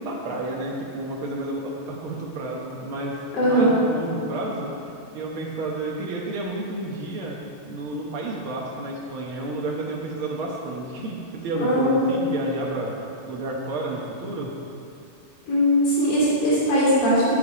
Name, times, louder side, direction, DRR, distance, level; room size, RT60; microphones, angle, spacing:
voice 1, 0.0-7.4 7.7-14.5, right 2 dB, 80° right, -3 dB, 1.1 m, -31 dB
voice 2, 3.3-3.7 11.6-12.1 15.5-17.3, equal, 80° left, -8 dB, 4.6 m, -20 dB
12.5 x 8.6 x 4.9 m, 2.7 s
omnidirectional pair, 4.0 m